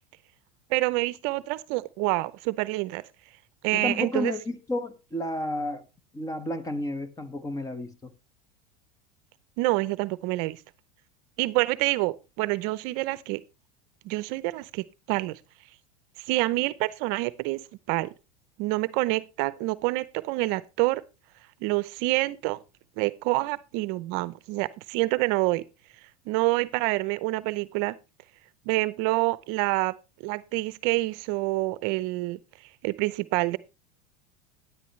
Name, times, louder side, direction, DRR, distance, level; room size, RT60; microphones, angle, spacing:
voice 1, 0.7-3.0 3.6-4.3 9.6-10.6 11.4-13.4 14.0-15.4 16.2-17.6 17.9-18.1 18.6-21.0 21.6-22.6 23.0-25.6 26.3-27.9 28.7-29.9 30.2-32.4 32.8-33.6, right 20 dB, 60° right, 0.7 m, -27 dB
voice 2, 3.7-5.8 6.1-8.1, left 1 dB, 15° left, 1.6 m, -31 dB
12.5 x 10.0 x 3.2 m
hypercardioid pair, 105°, 19 cm